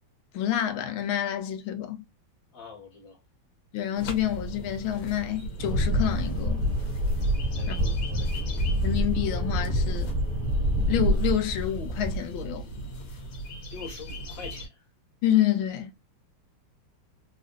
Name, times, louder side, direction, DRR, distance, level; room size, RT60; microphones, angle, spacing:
voice 1, 0.3-2.0 3.7-6.6 7.7-7.8 8.1-8.3 8.8-10.1 10.9-12.6 15.2-15.9, left 11 dB, 85° left, 1.5 m, -28 dB
voice 2, 2.5-3.2 7.5-8.6 13.7-14.8, left 5 dB, 45° left, 1.7 m, -44 dB
sound 1, 3.9-14.7, right 1 dB, 70° left, 1.7 m, -38 dB
sound 2, 5.6-12.1, equal, 55° right, 1.1 m, -26 dB
3.7 x 2.5 x 2.5 m
omnidirectional pair, 2.2 m